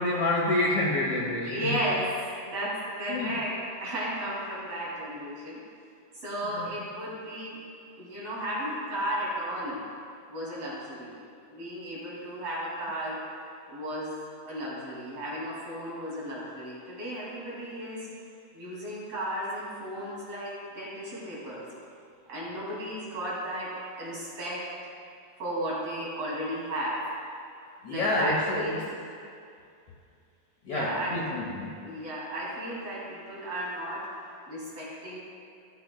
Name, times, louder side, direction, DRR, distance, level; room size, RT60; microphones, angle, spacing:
voice 1, 0.0-1.7 3.1-3.3 6.6-6.7 27.8-28.8 30.7-31.8, left 2 dB, 65° left, -3 dB, 2.0 m, -28 dB
voice 2, 1.4-2.1 2.4-5.6 6.2-7.6 8.0-9.8 10.3-11.2 11.5-13.2 13.7-14.2 14.4-18.1 18.5-21.7 22.3-24.7 25.4-27.1 27.9-28.9 30.7-31.3 31.8-34.1 34.5-35.2, right 1 dB, 45° right, -7 dB, 3.3 m, -34 dB
14.0 x 13.5 x 2.2 m, 2.4 s
omnidirectional pair, 4.3 m